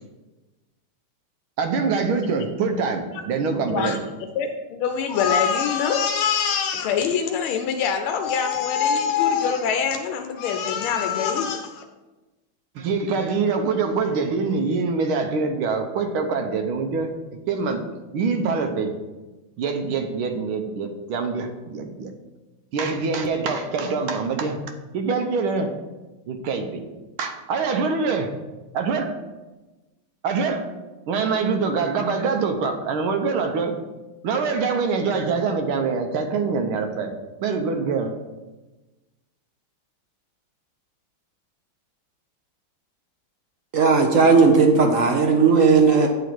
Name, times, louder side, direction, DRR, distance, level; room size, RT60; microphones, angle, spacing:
voice 1, 1.6-4.0 12.8-17.1 17.5-17.8 18.1-18.9 19.6-22.1 22.7-24.6 24.9-25.7 26.3-26.9 27.2-28.4 28.7-29.2 30.2-30.7 31.1-33.7 34.2-37.1 37.4-38.1, right 4 dB, 90° right, 1.7 m, -24 dB
voice 2, 4.4-11.8, left 7 dB, 90° left, 1.5 m, -24 dB
voice 3, 43.7-46.1, right 4 dB, 60° right, 0.9 m, -16 dB
8.2 x 3.8 x 6.0 m
omnidirectional pair, 2.2 m